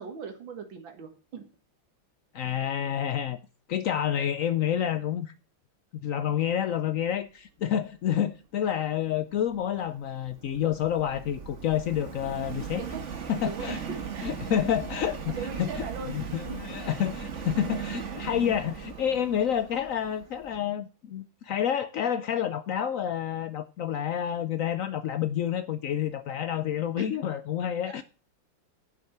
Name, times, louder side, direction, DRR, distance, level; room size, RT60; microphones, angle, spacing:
voice 1, 0.0-1.5 2.6-2.7 12.8-13.0 13.4-14.4 15.4-16.1 27.0-27.1 27.9-28.0, right 5 dB, 75° right, 2.4 m, -39 dB
voice 2, 2.3-3.4 3.7-5.3 6.0-12.8 13.3-13.8 14.2-28.0, left 9 dB, 75° left, 0.7 m, -29 dB
Subway metro underground, 9.3-20.6, right 6 dB, 40° right, 1.4 m, -38 dB
11.0 x 6.3 x 5.8 m
omnidirectional pair, 2.1 m